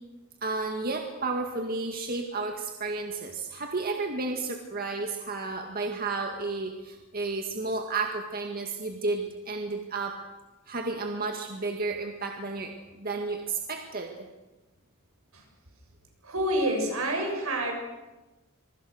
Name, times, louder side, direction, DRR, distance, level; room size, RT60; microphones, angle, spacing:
voice 1, 0.4-10.2 10.7-14.1, right 3 dB, 45° right, 3 dB, 2.0 m, -32 dB
voice 2, 16.3-17.7, right 1 dB, 80° right, 3 dB, 7.1 m, -27 dB
26.5 x 23.5 x 6.6 m, 1.1 s
head